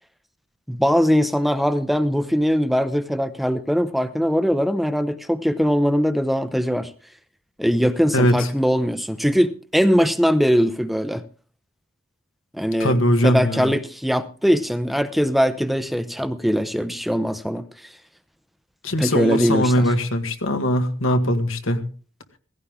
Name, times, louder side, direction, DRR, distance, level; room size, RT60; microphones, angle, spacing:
voice 1, 0.7-6.9 7.6-11.2 12.5-13.0 13.2-17.6 19.0-19.9, equal, ahead, 0.6 m, -21 dB
voice 2, 8.1-8.5 12.8-13.7 18.8-21.8, equal, 85° left, 2.0 m, -20 dB
17.0 x 16.0 x 3.7 m
head